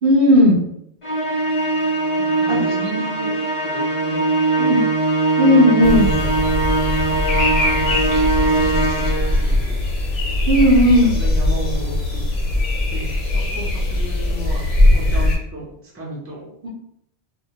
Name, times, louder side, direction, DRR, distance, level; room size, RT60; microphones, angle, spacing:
voice 1, 0.0-0.6 2.5-2.6 4.6-4.8 5.4-6.1 10.5-11.1 16.6-16.7, left 1 dB, 60° right, -3 dB, 0.7 m, -14 dB
Musical instrument, 1.0-9.5, right 2 dB, 35° left, 0.5 m, -20 dB
voice 2, 2.2-3.3 3.6-4.3 4.5-4.9 5.8-6.6 7.0-9.0 9.4-9.8 10.7-10.9 11.1-12.2 12.9-14.6 14.9-16.5, right 1 dB, 15° right, -5 dB, 0.5 m, -34 dB
sound 1, 5.8-15.4, left 2 dB, 70° left, 0.8 m, -20 dB
2.1 x 2.0 x 2.8 m, 0.73 s
omnidirectional pair, 1.1 m